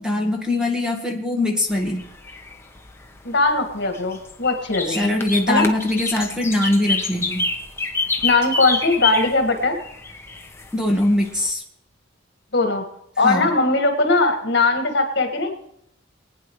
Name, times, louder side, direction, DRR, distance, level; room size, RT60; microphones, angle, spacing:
voice 1, 0.0-2.0 4.9-7.4 10.7-11.6 13.2-13.5, left 1 dB, 5° right, 2 dB, 1.4 m, -22 dB
sound 1, 1.7-11.5, left 3 dB, 15° left, 1.0 m, -28 dB
voice 2, 3.2-5.1 5.5-5.7 8.2-9.8 12.5-12.8 13.2-15.5, left 3 dB, 60° left, 4 dB, 1.9 m, -20 dB
23.5 x 9.5 x 3.2 m, 0.73 s
head